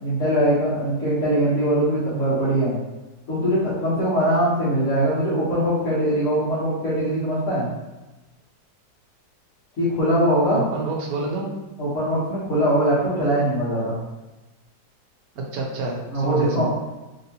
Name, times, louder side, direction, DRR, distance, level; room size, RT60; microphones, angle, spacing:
voice 1, 0.0-2.8 3.3-7.7 9.8-10.6 11.8-14.0 16.1-16.7, right 1 dB, 50° left, -10 dB, 1.2 m, -21 dB
voice 2, 10.5-11.5 15.5-16.7, right 3 dB, 65° right, -1 dB, 0.9 m, -27 dB
3.2 x 2.9 x 2.7 m, 1.1 s
omnidirectional pair, 2.0 m